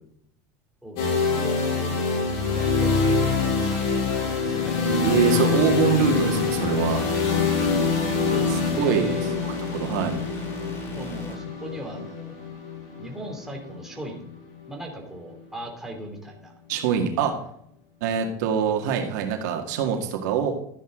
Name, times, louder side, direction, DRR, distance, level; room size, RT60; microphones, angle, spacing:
voice 1, 0.8-2.0 2.5-3.9 4.2-4.8 8.2-9.4 11.0-12.4 13.0-14.2 14.7-16.5, right 1 dB, 5° right, 0 dB, 3.0 m, -38 dB
sound 1, 1.0-14.8, left 4 dB, 65° left, 5.4 m, -25 dB
sound 2, 4.9-11.4, equal, 25° left, 3.0 m, -38 dB
voice 2, 5.0-7.0 8.5-9.1 9.4-9.5 9.8-10.2 16.7-17.3 18.0-20.5, right 8 dB, 85° right, 3 dB, 2.1 m, -24 dB
13.0 x 9.5 x 3.8 m, 0.69 s
supercardioid pair, 130°, 9 cm